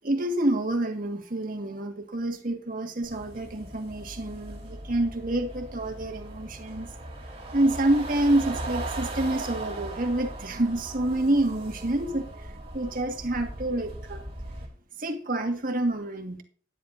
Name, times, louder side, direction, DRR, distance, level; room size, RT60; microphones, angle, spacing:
voice 1, 0.0-6.9 7.5-12.3 12.7-14.2 15.0-16.4, right 1 dB, 50° right, 1.8 m, -27 dB
sound 1, 3.0-14.7, right 2 dB, 30° right, 3.3 m, -38 dB
13.5 x 10.5 x 2.7 m
head